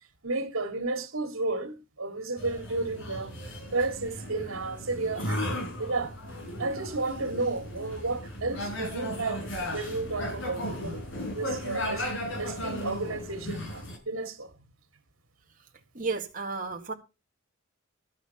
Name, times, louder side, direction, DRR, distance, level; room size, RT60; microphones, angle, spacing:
voice 1, 0.2-3.3 3.7-5.4 5.8-6.2 6.6-11.0 11.3-12.1 12.4-14.5, right 3 dB, 80° right, 2.4 m, -32 dB
sound 1, 2.4-14.0, equal, 65° left, 5.0 m, -36 dB
voice 2, 16.0-16.9, right 4 dB, 40° right, 1.9 m, -32 dB
13.0 x 8.7 x 5.6 m
head